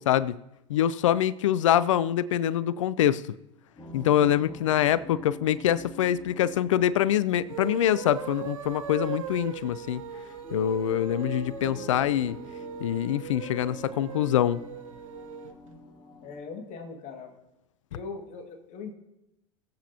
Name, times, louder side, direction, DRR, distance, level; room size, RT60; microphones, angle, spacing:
voice 1, 0.1-0.4 0.7-3.2 3.9-10.0 10.5-12.4 12.8-14.6, left 11 dB, 70° left, 0.4 m, -24 dB
sound 1, 3.8-16.4, left 1 dB, 25° left, 2.6 m, -46 dB
sound 2, 7.4-15.6, right 8 dB, 75° right, 0.9 m, -39 dB
voice 2, 16.2-17.3 17.9-18.9, left 4 dB, 45° left, 1.9 m, -40 dB
19.5 x 7.8 x 2.8 m
figure-of-eight pair, 80°, 17 cm